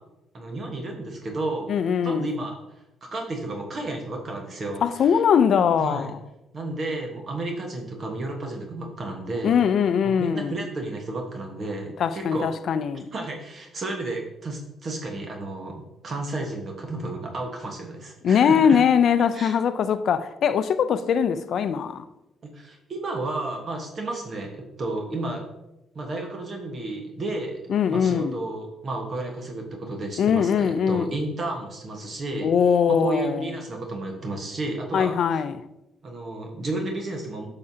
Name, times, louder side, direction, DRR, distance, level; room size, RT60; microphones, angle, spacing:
voice 1, 0.3-1.7 2.0-2.6 3.0-5.2 5.8-6.1 6.5-9.6 10.0-12.5 13.1-18.8 19.3-19.6 22.5-25.4 25.9-27.6 27.9-32.5 32.9-35.4 36.0-37.5, right 2 dB, 45° right, 1.3 m, -32 dB
voice 2, 1.7-2.3 4.8-6.1 9.4-10.5 12.0-13.1 18.2-22.0 27.7-28.4 30.2-31.1 32.4-33.5 34.9-35.6, left 7 dB, 65° left, 0.4 m, -21 dB
8.4 x 5.7 x 2.8 m
cardioid pair, 90°, 0 cm